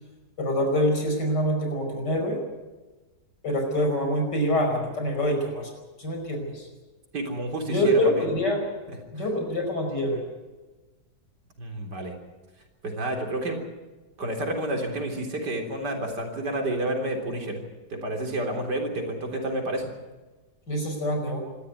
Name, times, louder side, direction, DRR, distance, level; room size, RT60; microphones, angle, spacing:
voice 1, 0.4-2.4 3.4-5.7 6.0-6.7 7.6-8.6 9.1-10.2 16.6-16.7 20.7-21.4, equal, 75° left, 3 dB, 5.8 m, -25 dB
voice 2, 7.1-8.3 11.6-12.1 12.8-13.6 14.2-17.6 17.9-19.9, right 1 dB, 75° right, 3 dB, 4.1 m, -30 dB
26.5 x 13.5 x 9.4 m, 1.2 s
omnidirectional pair, 1.8 m